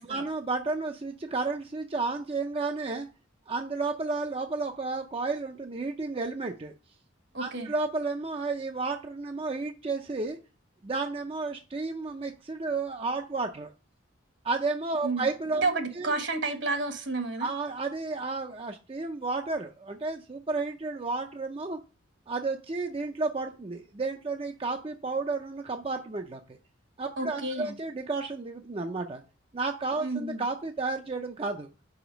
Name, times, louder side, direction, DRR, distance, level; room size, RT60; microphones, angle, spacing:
voice 1, 0.0-3.1 3.5-6.7 7.4-10.4 10.8-13.7 14.4-15.7 16.0-16.1 17.4-21.8 22.3-26.6 27.0-29.2 29.5-31.7, right 3 dB, 30° right, 0.5 m, -32 dB
voice 2, 7.3-7.7 15.0-15.3 15.6-17.5 27.2-27.7 30.0-30.4, right 3 dB, 65° right, 1.3 m, -31 dB
5.4 x 5.0 x 5.0 m
head